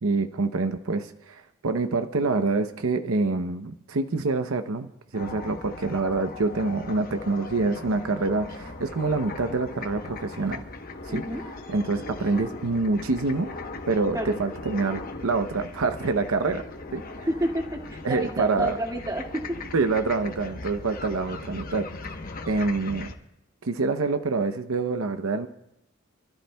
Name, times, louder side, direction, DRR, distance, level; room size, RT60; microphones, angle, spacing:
voice 1, 0.0-10.6 11.0-11.2 11.7-13.5 13.9-16.6 16.9-17.0 18.0-18.8 19.7-21.9 22.5-23.1 23.6-25.5, right 3 dB, 85° right, 8 dB, 0.7 m, -26 dB
sound 1, 5.1-23.1, left 3 dB, 45° left, 1.0 m, -39 dB
voice 2, 11.1-11.4 14.1-14.4 17.3-19.4, right 1 dB, 15° right, 0 dB, 2.0 m, -29 dB
28.5 x 13.0 x 2.3 m, 0.91 s
head